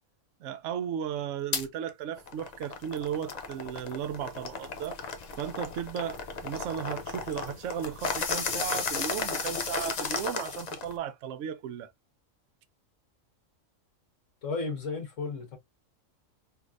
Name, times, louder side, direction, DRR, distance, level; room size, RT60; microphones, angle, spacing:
voice 1, 0.4-5.0 5.4-11.9, right 9 dB, 70° right, 0.9 m, -35 dB
sound 1, 1.5-1.7 2.2-11.0, left 5 dB, 50° left, 0.5 m, -34 dB
voice 2, 14.4-15.6, left 4 dB, 70° left, 1.8 m, -33 dB
3.3 x 3.1 x 2.4 m
omnidirectional pair, 1.4 m